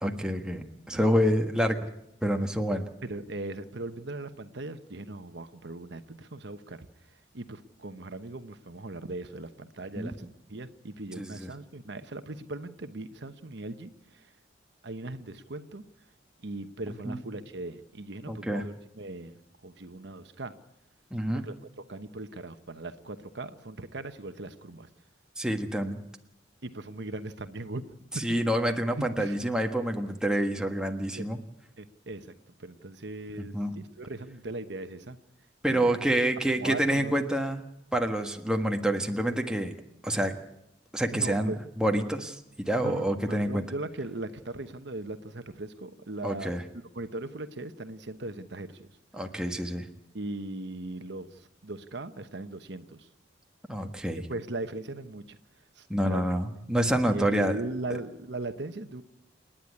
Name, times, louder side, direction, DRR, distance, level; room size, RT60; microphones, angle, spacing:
voice 1, 0.0-1.8 2.2-2.9 10.0-10.1 11.2-11.5 17.0-17.2 18.3-18.6 21.1-21.4 25.4-26.0 28.2-31.4 33.4-33.7 35.6-37.6 37.9-39.7 40.0-40.3 40.9-43.6 46.2-46.6 49.1-49.9 53.7-54.2 55.9-57.6, right 1 dB, 5° right, 3 dB, 1.5 m, -27 dB
voice 2, 3.0-6.9 7.3-14.3 14.8-15.8 16.4-20.5 21.3-21.5 21.9-24.9 26.6-27.8 28.1-28.4 29.0-29.4 31.1-31.3 31.8-32.3 32.6-35.2 35.7-36.0 36.5-37.2 41.1-41.6 42.7-46.5 46.9-48.9 50.1-53.1 54.3-55.4 55.8-56.2 57.1-59.0, right 2 dB, 65° right, 10 dB, 1.1 m, -39 dB
28.5 x 10.5 x 9.6 m, 0.84 s
head